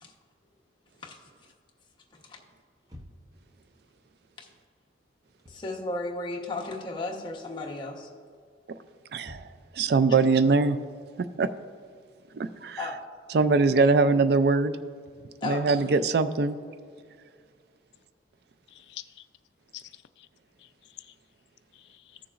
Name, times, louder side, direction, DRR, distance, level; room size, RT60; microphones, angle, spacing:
sound 1, 2.8-3.5 5.2-5.7 6.0-7.0 7.3-7.7 8.3-9.8, left 1 dB, 20° right, 0.8 m, -50 dB
voice 1, 5.5-8.1 12.8-13.0 15.4-15.7, left 2 dB, 25° left, -1 dB, 1.0 m, -34 dB
voice 2, 9.1-10.8 11.2-11.5 12.3-12.8 13.3-14.8 15.4-16.6, right 4 dB, 55° right, 12 dB, 0.4 m, -23 dB
voice 3, 18.7-19.3 19.7-20.3 20.6-21.2 21.7-22.2, left 14 dB, 65° left, 11 dB, 0.3 m, -47 dB
15.0 x 6.9 x 2.5 m, 2.1 s
head